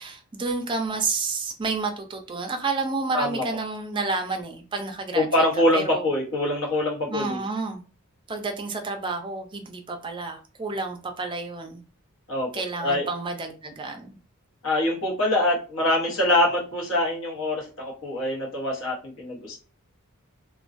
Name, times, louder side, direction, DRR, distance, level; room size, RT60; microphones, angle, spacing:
voice 1, 0.0-5.3 5.7-6.0 7.1-7.8 8.3-11.8 12.5-14.2, right 3 dB, 25° right, 0.4 m, -30 dB
voice 2, 3.1-3.4 5.1-7.4 12.3-13.1 14.6-19.6, left 1 dB, 65° left, 1.0 m, -24 dB
2.3 x 2.2 x 2.5 m
head